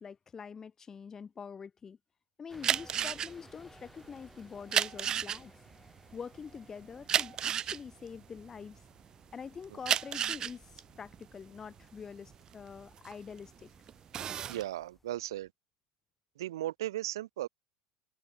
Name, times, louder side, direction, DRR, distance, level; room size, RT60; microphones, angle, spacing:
voice 1, 0.0-2.0 2.4-5.5 6.1-8.8 9.3-13.7, left 6 dB, 25° left, 1.6 m, -45 dB
sound 1, 2.5-15.5, left 2 dB, 10° left, 4.5 m, -61 dB
sound 2, 2.5-9.1 9.6-13.5 13.9-14.6, right 9 dB, 35° right, 0.4 m, -32 dB
voice 2, 14.5-15.5 16.4-17.5, right 14 dB, 90° right, 0.4 m, -36 dB
supercardioid pair, 110°, 2 cm